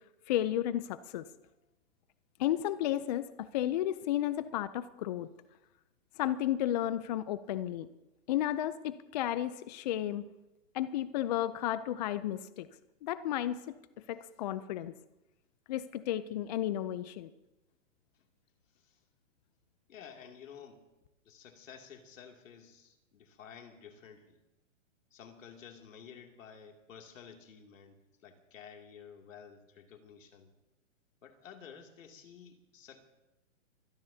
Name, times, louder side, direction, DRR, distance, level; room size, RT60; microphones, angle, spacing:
voice 1, 0.3-1.3 2.4-5.3 6.2-7.9 8.3-10.3 10.7-12.7 13.0-13.7 14.1-14.9 15.7-17.3, left 12 dB, 35° left, 14 dB, 0.6 m, -33 dB
voice 2, 19.9-20.9 21.2-24.4 25.1-30.5 31.2-33.0, left 7 dB, 75° left, 3 dB, 2.8 m, -52 dB
25.0 x 17.0 x 2.8 m, 0.99 s
hypercardioid pair, 150°, 39 cm